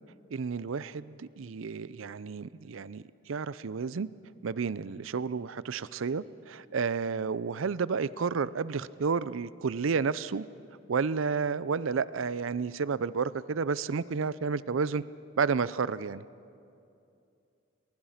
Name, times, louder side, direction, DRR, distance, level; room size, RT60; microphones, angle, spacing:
voice 1, 0.3-4.1 4.4-10.4 10.9-15.0 15.4-16.2, right 5 dB, 85° right, 17 dB, 0.5 m, -31 dB
22.5 x 20.0 x 5.8 m, 2.6 s
head